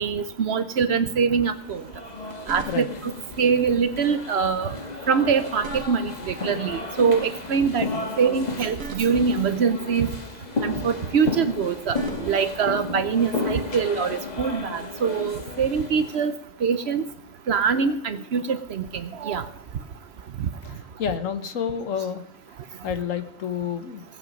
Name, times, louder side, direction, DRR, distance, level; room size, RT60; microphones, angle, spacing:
voice 1, 0.0-1.8 2.5-3.1 3.4-4.7 5.1-7.9 8.2-10.1 10.6-16.3 16.6-17.0 17.5-19.4, right 6 dB, 60° right, 12 dB, 0.9 m, -23 dB
sound 1, 1.6-16.3, left 3 dB, 35° left, 1.4 m, -33 dB
sound 2, 2.0-3.2 5.2-6.3 8.3-9.5 11.5-12.7 14.6-14.8, right 4 dB, 75° right, 1.5 m, -40 dB
voice 2, 20.6-22.3 22.8-24.0, left 8 dB, 75° left, 10 dB, 1.3 m, -29 dB
18.5 x 8.3 x 5.2 m, 0.75 s
omnidirectional pair, 1.4 m